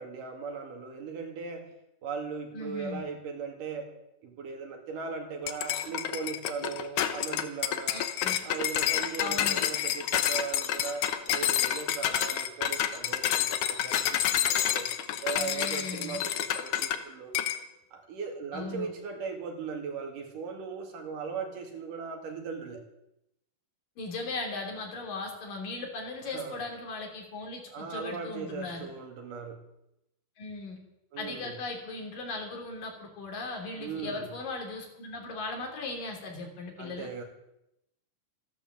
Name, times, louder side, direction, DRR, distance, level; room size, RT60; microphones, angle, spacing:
voice 1, 0.0-1.7 2.0-3.9 4.2-8.1 8.4-14.9 15.2-17.3 17.9-22.8 26.3-26.6 27.7-29.6 31.1-31.6 33.8-34.3 36.8-37.2, right 5 dB, 75° right, 2 dB, 3.9 m, -38 dB
voice 2, 2.5-3.1 7.9-8.4 9.2-9.6 15.3-16.2 18.5-18.9 24.0-28.9 30.4-30.8 31.2-37.1, left 3 dB, 85° left, 1 dB, 5.0 m, -38 dB
sound 1, 5.5-17.0 17.4-17.6, left 10 dB, 70° left, 2.2 m, -29 dB
14.0 x 12.0 x 7.5 m, 0.84 s
omnidirectional pair, 3.8 m